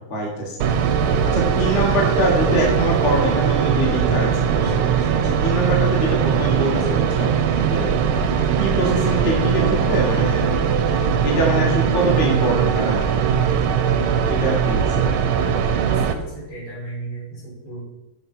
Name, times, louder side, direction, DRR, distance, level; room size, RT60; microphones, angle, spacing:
voice 1, 0.1-0.6 1.3-4.8 5.1-7.3 7.7-7.9 8.6-10.4 11.2-13.3 13.5-13.6 14.2-15.1, right 1 dB, 30° left, -2 dB, 1.3 m, -23 dB
sound 1, 0.6-16.1, right 7 dB, 85° right, 1.5 m, -20 dB
voice 2, 15.8-17.8, right 2 dB, 80° left, -7 dB, 4.1 m, -36 dB
6.9 x 5.9 x 4.3 m, 0.99 s
omnidirectional pair, 2.3 m